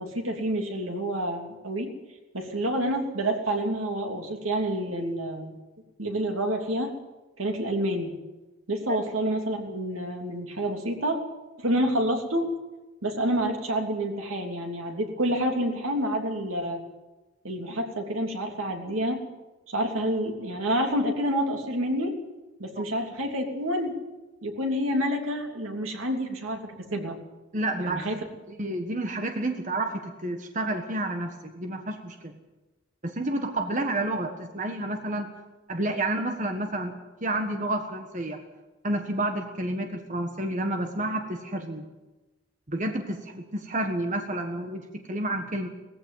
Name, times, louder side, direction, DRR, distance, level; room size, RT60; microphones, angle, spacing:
voice 1, 0.0-1.9 2.3-5.6 6.0-6.9 7.4-8.1 8.7-11.2 11.6-12.5 13.0-16.8 17.4-19.2 19.7-22.2 22.6-24.0 24.4-27.2 27.8-28.2 28.6-28.9, right 1 dB, 80° right, 3 dB, 3.1 m, -28 dB
voice 2, 27.5-28.0 28.6-32.3 33.0-35.3 35.7-37.0 37.2-38.4 38.8-41.8 42.7-45.7, right 1 dB, 35° right, 5 dB, 1.5 m, -30 dB
19.0 x 15.0 x 9.3 m, 1.1 s
head